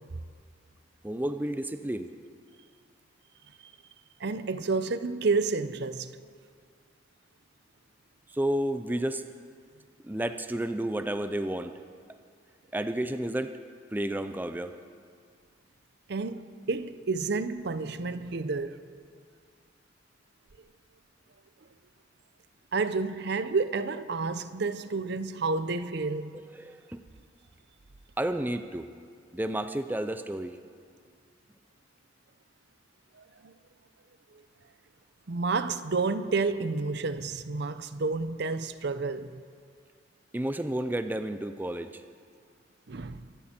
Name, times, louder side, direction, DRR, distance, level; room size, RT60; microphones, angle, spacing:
voice 1, 1.0-2.1 8.3-9.3 10.0-11.7 12.7-13.5 13.9-14.8 26.3-27.0 28.2-28.9 29.3-30.6 40.3-42.0, right 1 dB, 10° right, 0.4 m, -31 dB
voice 2, 4.2-6.1 16.1-18.8 22.7-26.4 33.4-33.5 35.3-39.4 42.9-43.2, right 4 dB, 60° right, 0.6 m, -30 dB
25.0 x 13.0 x 4.4 m
head